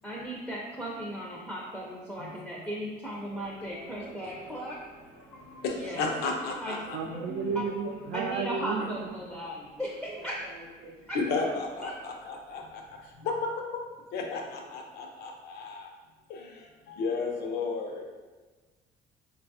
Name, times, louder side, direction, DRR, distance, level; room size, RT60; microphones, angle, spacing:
voice 1, 0.0-4.8 5.8-6.1 6.6-6.8 7.5-7.6 8.1-10.4 11.1-11.2 11.8-11.9, equal, ahead, -3 dB, 0.4 m, -36 dB
Subway metro underground, 3.4-13.1, right 2 dB, 50° right, 0.7 m, -48 dB
voice 2, 5.3-7.0 11.1-12.8 13.2-13.6 14.1-15.9 16.3-16.5 16.9-18.0, left 4 dB, 75° left, 2 dB, 0.6 m, -33 dB
voice 3, 6.9-9.1, right 5 dB, 75° right, 5 dB, 0.4 m, -32 dB
3.9 x 2.3 x 2.6 m, 1.3 s
cardioid pair, 110°, 17 cm